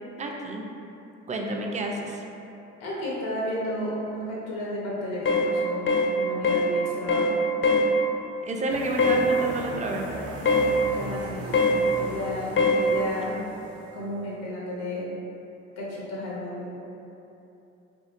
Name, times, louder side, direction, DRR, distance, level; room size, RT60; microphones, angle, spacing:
voice 1, 0.2-0.6 1.3-2.2 8.4-10.1 13.3-13.4, right 2 dB, 25° right, 1 dB, 0.4 m, -30 dB
voice 2, 2.8-7.4 10.9-11.5 12.0-13.3 13.9-15.1 15.8-16.7, left 1 dB, 90° left, -6 dB, 0.7 m, -32 dB
sound 1, 5.3-5.5 5.9-6.1 6.4-6.7 7.1-7.3 7.6-7.9 9.0-9.2 10.5-10.7 11.5-11.8 12.6-12.8, left 3 dB, 40° left, 0.4 m, -21 dB
sound 2, 8.7-14.2, right 1 dB, 85° right, 0.5 m, -38 dB
2.7 x 2.7 x 2.5 m, 2.9 s
hypercardioid pair, 50°, 33 cm